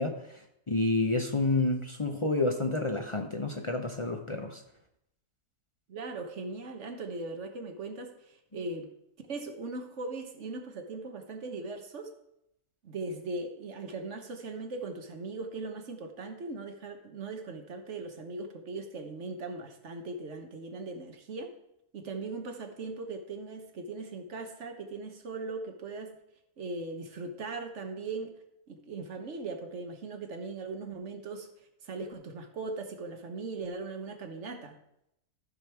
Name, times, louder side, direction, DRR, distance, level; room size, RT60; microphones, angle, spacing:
voice 1, 0.0-4.6, left 2 dB, 40° left, 3 dB, 0.4 m, -29 dB
voice 2, 5.9-8.9 9.3-12.1 12.8-21.5 21.9-26.2 26.6-28.4 28.7-31.5 31.8-34.8, right 3 dB, 50° right, 5 dB, 1.4 m, -39 dB
13.5 x 5.2 x 4.6 m, 0.80 s
omnidirectional pair, 1.6 m